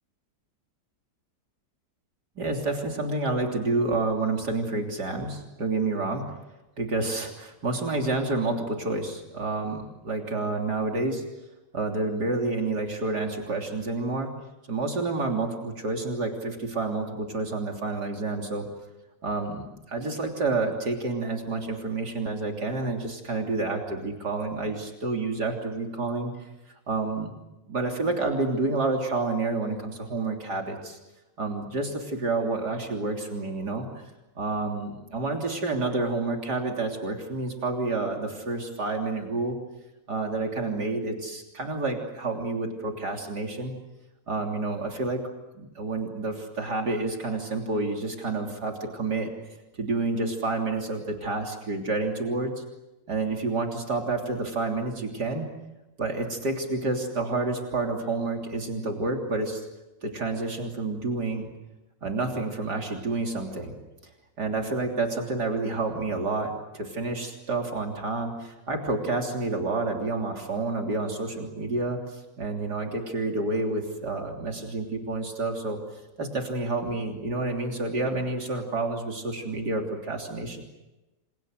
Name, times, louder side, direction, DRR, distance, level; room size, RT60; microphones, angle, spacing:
voice 1, 2.4-6.3 6.8-11.2 11.7-14.3 14.7-18.7 19.2-26.3 26.9-27.3 27.7-31.0 31.4-34.0 34.4-39.6 40.1-43.7 44.3-45.2 45.5-49.3 49.7-52.6 53.1-55.5 56.0-59.6 60.0-61.5 62.0-63.8 64.4-75.8 76.2-80.6, right 3 dB, 70° right, 2 dB, 3.8 m, -29 dB
28.5 x 28.0 x 6.5 m, 1.0 s
omnidirectional pair, 1.8 m